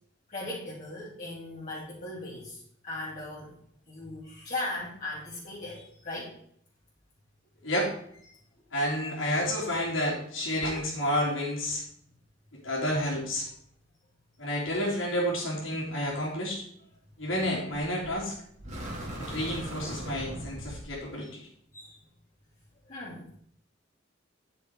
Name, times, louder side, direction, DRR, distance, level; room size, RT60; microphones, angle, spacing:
voice 1, 0.3-3.5 3.9-6.3 21.7-22.0 22.9-23.3, left 2 dB, 40° left, -9 dB, 3.0 m, -38 dB
voice 2, 8.7-11.8 12.5-13.5 14.4-16.6 17.2-18.3 19.2-21.5, equal, 80° left, -7 dB, 3.2 m, -30 dB
sound 1, 18.0-18.2 18.6-20.9, equal, 35° right, 2.9 m, -38 dB
9.9 x 7.0 x 4.7 m, 0.67 s
head